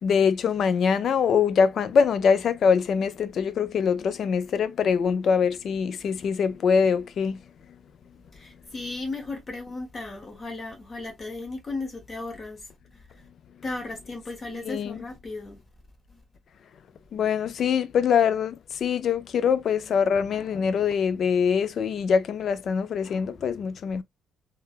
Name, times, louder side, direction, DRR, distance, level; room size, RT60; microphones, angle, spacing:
voice 1, 0.0-7.4 14.6-15.0 17.1-24.0, left 6 dB, 45° left, 0.4 m, -23 dB
voice 2, 8.3-13.0 13.6-15.6 16.1-16.2, left 3 dB, 30° left, 1.1 m, -36 dB
3.6 x 2.3 x 2.3 m
cardioid pair, 145°, 0 cm